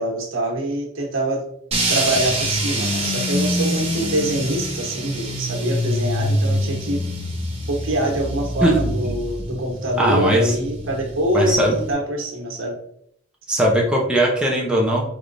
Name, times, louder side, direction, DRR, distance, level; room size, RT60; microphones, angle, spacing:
voice 1, 0.0-1.4 1.9-7.0 7.7-12.8, right 1 dB, 85° right, 0 dB, 1.2 m, -24 dB
sound 1, 1.7-11.9, equal, 30° right, 1.0 m, -25 dB
voice 2, 8.6-8.9 10.0-10.5 11.3-11.7 13.5-15.1, right 1 dB, 5° right, -2 dB, 0.7 m, -19 dB
4.3 x 3.5 x 2.6 m, 0.68 s
head